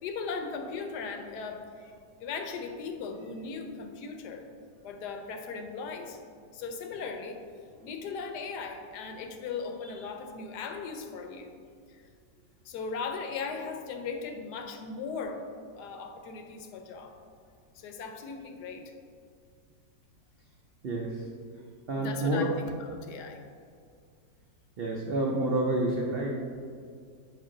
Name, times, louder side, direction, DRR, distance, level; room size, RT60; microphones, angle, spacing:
voice 1, 0.0-1.9 2.2-4.4 4.8-6.2 6.5-7.4 7.8-11.5 11.9-12.0 12.6-15.4 15.7-17.1 17.7-18.9 22.0-23.4, left 5 dB, 75° left, 5 dB, 1.2 m, -38 dB
voice 2, 20.8-21.2 21.9-22.5 24.8-26.6, right 1 dB, 75° right, -2 dB, 0.5 m, -29 dB
6.5 x 4.9 x 3.8 m, 2.2 s
omnidirectional pair, 1.8 m